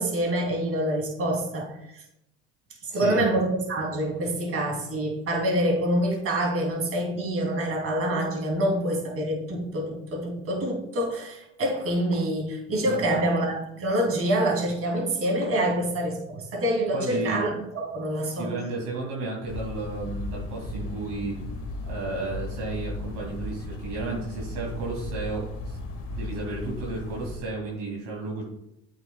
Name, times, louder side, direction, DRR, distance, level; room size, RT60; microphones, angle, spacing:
voice 1, 0.0-2.0 2.8-18.5, right 1 dB, 40° right, 0 dB, 3.1 m, -26 dB
voice 2, 2.9-3.2 12.9-13.2 16.9-17.4 18.3-21.4 21.8-28.4, right 3 dB, 70° right, -2 dB, 2.6 m, -33 dB
sound 1, 19.5-27.4, left 2 dB, 65° left, 1.6 m, -36 dB
9.2 x 8.0 x 2.3 m, 0.83 s
supercardioid pair, 75°, 34 cm